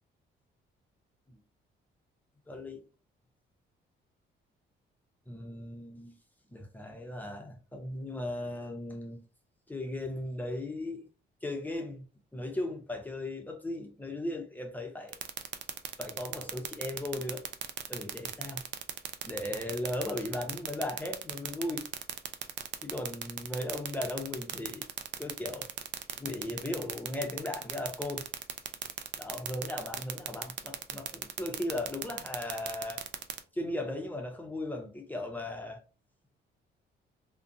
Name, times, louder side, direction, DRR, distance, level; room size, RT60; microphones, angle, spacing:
voice 1, 2.5-2.8 5.3-6.1 6.5-9.2 9.7-11.0 11.4-12.1 12.3-15.2 16.0-17.4 17.9-18.6 19.2-21.8 22.8-24.8 25.2-25.7 26.2-28.3 29.2-33.0 33.5-35.8, left 1 dB, 10° left, 0.6 m, -37 dB
sound 1, 15.1-33.4, right 11 dB, 65° right, 0.4 m, -35 dB
2.5 x 2.1 x 2.5 m
cardioid pair, 90°, 20 cm